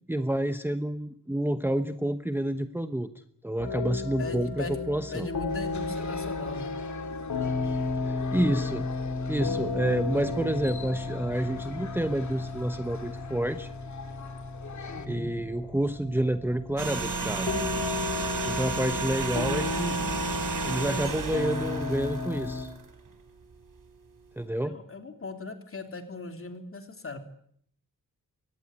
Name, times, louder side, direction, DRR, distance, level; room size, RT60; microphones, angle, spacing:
voice 1, 0.1-3.1 3.4-5.3 8.0-8.9 9.3-13.7 15.1-17.5 18.4-20.0 20.6-22.7 24.4-24.8, right 1 dB, 5° right, 9 dB, 1.0 m, -29 dB
sound 1, 3.6-22.7, left 3 dB, 80° left, 4.0 m, -34 dB
voice 2, 4.2-4.7 5.1-6.7 14.9-15.3 24.6-27.2, left 3 dB, 40° left, 6 dB, 3.3 m, -39 dB
sound 2, 5.5-15.1, left 5 dB, 60° left, 2.3 m, -44 dB
sound 3, 16.8-23.1 23.4-23.5, right 4 dB, 75° right, 3.9 m, -32 dB
23.5 x 18.5 x 9.6 m, 0.65 s
wide cardioid pair, 160°, 33 cm